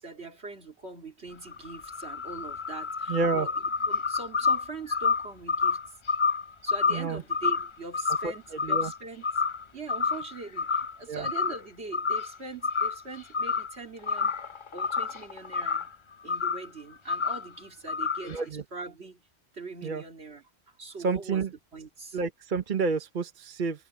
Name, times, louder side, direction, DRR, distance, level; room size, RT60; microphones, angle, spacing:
voice 1, 0.0-3.5 3.9-5.8 6.6-9.2 9.7-14.4 14.7-15.9 16.2-19.3 19.5-21.4 21.7-22.2, right 3 dB, 70° right, 2.9 m, -42 dB
sound 1, 1.3-9.0 9.2-9.6 9.9-11.0 11.2-11.6 11.9-12.4 12.6-13.7 14.0-15.9 16.3-16.7 17.1-17.5 17.9-18.4, left 5 dB, 40° left, 0.5 m, -29 dB
voice 2, 3.1-3.5 6.9-7.2 8.2-8.3 8.6-8.9 11.1-11.3 18.2-18.6 19.8-20.0 21.0-21.5 22.1-23.9, right 4 dB, 50° right, 1.2 m, -29 dB
omnidirectional pair, 1.1 m